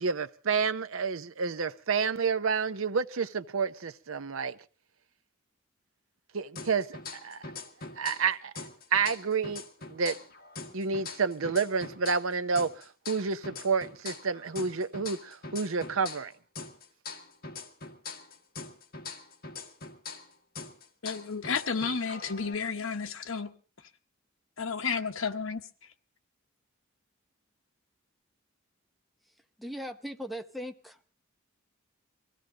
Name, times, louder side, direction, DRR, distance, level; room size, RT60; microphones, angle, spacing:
voice 1, 0.0-4.6 6.3-7.4 8.0-8.5 8.9-10.2 10.7-16.3, right 5 dB, 70° right, 0.7 m, -29 dB
sound 1, 6.6-8.3 8.6-12.3 12.6-16.3 16.6-20.3 20.6-22.6, left 4 dB, 50° left, 1.7 m, -43 dB
voice 2, 21.0-23.5 24.6-25.7, left 5 dB, 70° left, 1.1 m, -32 dB
voice 3, 29.6-31.0, equal, ahead, 0.8 m, -39 dB
23.5 x 15.5 x 3.8 m
head